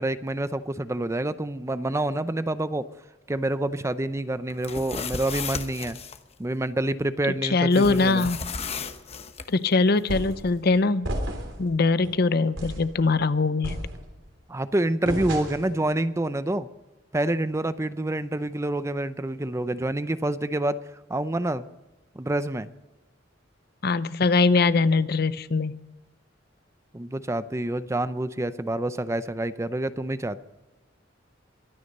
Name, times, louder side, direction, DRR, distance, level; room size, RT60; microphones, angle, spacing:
voice 1, 0.0-2.8 3.3-6.0 6.4-8.3 14.5-16.7 17.1-20.8 21.1-21.6 22.2-22.7 26.9-30.4, right 1 dB, 15° right, 13 dB, 0.5 m, -27 dB
sound 1, 4.5-6.2 7.7-9.5, left 5 dB, 35° left, 0.9 m, -34 dB
voice 2, 7.5-8.4 9.5-11.1 11.6-13.8 23.8-25.8, left 3 dB, 55° left, 15 dB, 0.6 m, -22 dB
sound 2, 10.1-10.5 11.0-11.6 12.0-12.2 12.6-12.9 13.6-14.3 15.1-15.8, equal, 75° right, 3.5 m, -32 dB
22.5 x 9.7 x 5.4 m, 1.1 s
head